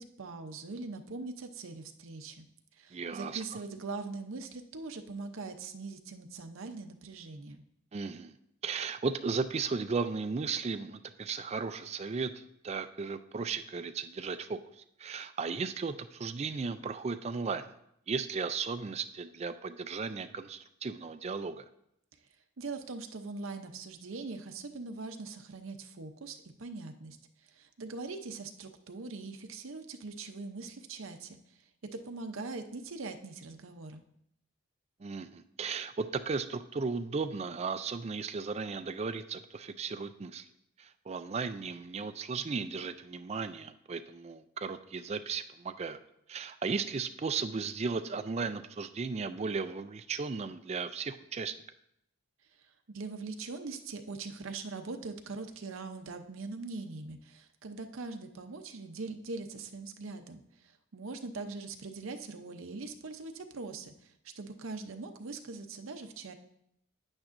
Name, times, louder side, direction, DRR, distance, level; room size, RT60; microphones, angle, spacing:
voice 1, 0.0-2.5 2.8-7.6 22.6-27.2 27.5-31.4 32.0-34.0 52.9-60.4 60.9-66.3, right 3 dB, 70° right, 6 dB, 0.7 m, -42 dB
voice 2, 2.9-3.4 7.9-8.4 8.6-17.7 18.1-21.6 35.0-40.5 40.8-46.0 46.3-51.5, right 4 dB, 30° right, 10 dB, 0.4 m, -35 dB
9.5 x 8.8 x 2.6 m, 0.77 s
head